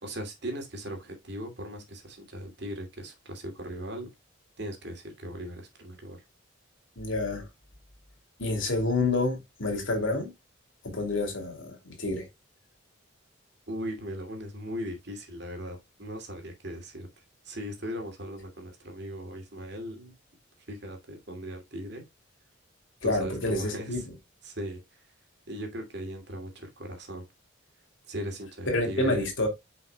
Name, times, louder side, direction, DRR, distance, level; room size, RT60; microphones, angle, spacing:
voice 1, 0.0-4.1 4.6-6.2 13.7-17.1 17.4-20.1 20.7-22.0 23.0-24.0 24.4-25.0 25.5-27.2 28.1-29.3, equal, 55° right, 2.5 m, -38 dB
voice 2, 7.0-7.4 8.4-10.3 10.8-12.3 23.0-24.0 28.7-29.5, left 2 dB, 70° left, 2.7 m, -28 dB
8.3 x 5.5 x 2.3 m
head